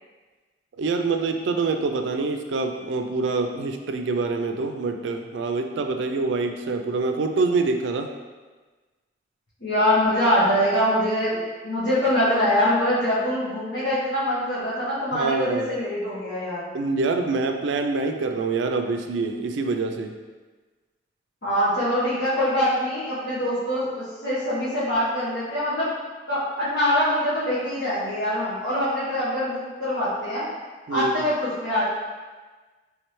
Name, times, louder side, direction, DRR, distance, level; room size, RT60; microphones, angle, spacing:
voice 1, 0.8-8.1 15.1-15.7 16.7-20.1 30.9-31.1, right 3 dB, 85° right, 5 dB, 0.4 m, -25 dB
voice 2, 9.6-16.7 21.4-25.9 26.3-30.5 30.9-31.8, equal, 80° left, -13 dB, 1.1 m, -24 dB
3.5 x 3.2 x 3.0 m, 1.3 s
head